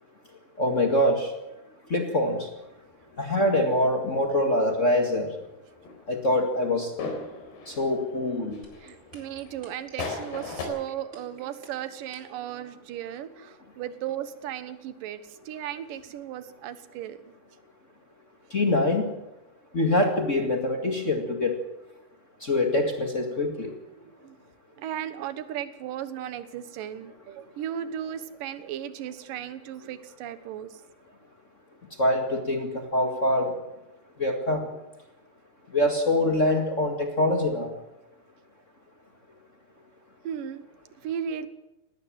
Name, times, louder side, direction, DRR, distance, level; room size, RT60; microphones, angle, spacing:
voice 1, 0.6-1.3 1.9-2.5 3.2-5.3 6.1-6.9 7.7-8.6 18.5-19.1 19.7-21.6 22.4-23.7 32.0-33.5 34.2-34.7 35.7-37.7, left 1 dB, 35° left, 4 dB, 1.2 m, -24 dB
sound 1, 2.3-4.3 4.6-5.1 5.3-10.6, left 4 dB, 85° left, 6.1 m, -40 dB
sound 2, 8.6-12.4, right 3 dB, 15° right, 4.3 m, -49 dB
voice 2, 8.8-17.2 24.0-24.4 24.8-30.8 40.2-40.6 41.0-41.5, right 10 dB, 65° right, 12 dB, 2.6 m, -36 dB
19.0 x 19.0 x 7.6 m, 0.96 s
omnidirectional pair, 4.6 m